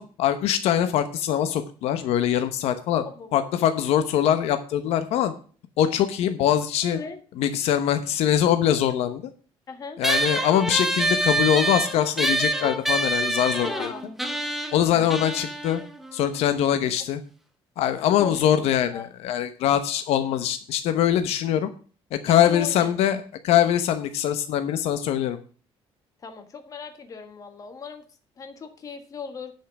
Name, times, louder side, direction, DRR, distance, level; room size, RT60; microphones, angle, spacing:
voice 1, 0.0-3.1 3.3-5.3 5.8-7.0 7.4-9.2 10.0-13.9 14.7-15.8 16.1-17.2 17.8-21.7 22.1-25.4, left 10 dB, 75° left, 9 dB, 1.0 m, -23 dB
voice 2, 6.8-7.2 9.7-10.0 13.6-14.0 18.2-19.1 22.3-22.9 26.2-28.0 28.4-29.5, left 5 dB, 35° left, 7 dB, 1.6 m, -37 dB
sound 1, 10.0-16.8, right 1 dB, ahead, 1.2 m, -27 dB
10.5 x 5.7 x 6.0 m, 0.40 s
cardioid pair, 160°, 11 cm